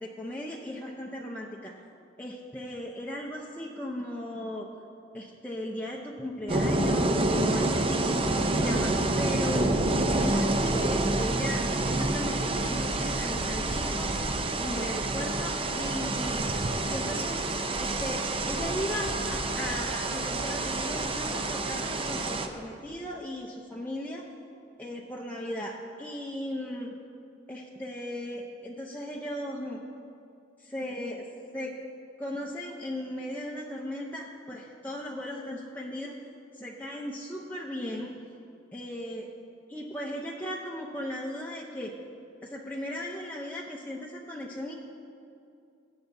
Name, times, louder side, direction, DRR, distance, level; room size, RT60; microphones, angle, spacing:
voice 1, 0.0-1.8 2.2-4.7 5.1-9.7 10.2-14.1 14.6-16.5 16.9-17.4 17.8-24.2 24.8-26.9 27.5-29.8 30.6-31.3 31.5-31.8 32.2-36.1 36.5-38.1 38.7-39.3 39.7-41.9 42.4-44.7, left 1 dB, 10° left, -3 dB, 0.7 m, -37 dB
sound 1, 6.5-22.5, right 2 dB, 30° right, 0.6 m, -28 dB
22.5 x 7.9 x 2.7 m, 2.5 s
head